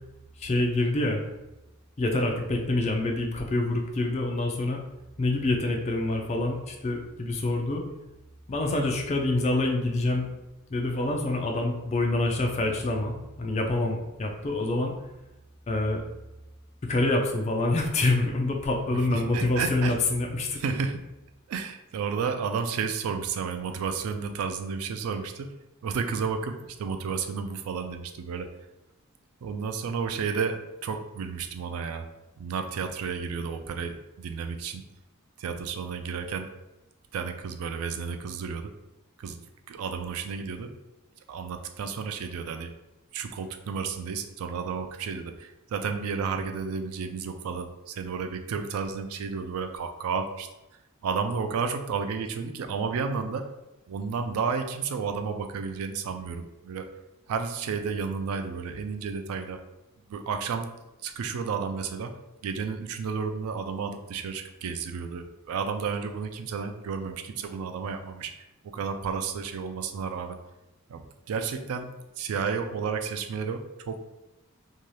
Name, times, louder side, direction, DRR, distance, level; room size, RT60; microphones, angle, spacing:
voice 1, 0.4-1.2 2.0-4.8 5.2-7.8 8.5-10.3 10.7-14.9 15.7-16.0 16.8-20.6, left 2 dB, 30° left, 2 dB, 0.4 m, -26 dB
voice 2, 18.9-20.0 20.6-21.1 21.5-25.5 25.8-28.5 29.4-32.1 32.4-34.8 35.4-36.5 37.1-38.7 39.2-39.4 39.7-40.7 41.3-42.7 43.1-50.5 51.0-53.5 53.9-56.9 57.3-59.6 60.1-60.7 61.0-62.1 62.4-70.4 70.9-71.9 72.2-74.0, right 5 dB, 85° right, 7 dB, 0.3 m, -32 dB
2.7 x 2.3 x 3.1 m, 0.99 s
head